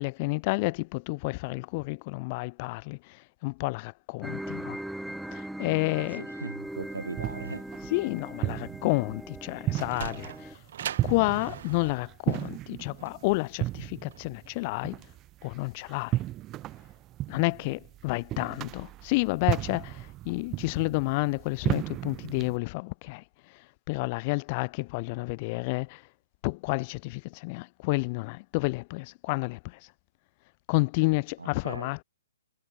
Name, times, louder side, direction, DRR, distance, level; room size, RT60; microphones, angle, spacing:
voice 1, 0.0-3.0 3.4-4.8 5.3-6.2 7.9-10.6 11.0-15.0 15.4-16.2 17.3-23.2 23.9-26.0 26.4-29.8 30.7-32.0, left 27 dB, 30° left, 0.5 m, -30 dB
sound 1, 4.2-10.5, right 1 dB, ahead, 1.1 m, -40 dB
voice 2, 6.0-7.7 31.4-31.9, right 3 dB, 75° right, 0.6 m, -39 dB
sound 2, 6.7-22.6, right 15 dB, 20° right, 0.4 m, -35 dB
Sliding door, 9.4-14.6, right 10 dB, 50° right, 2.8 m, -41 dB
figure-of-eight pair, 120°, 0 cm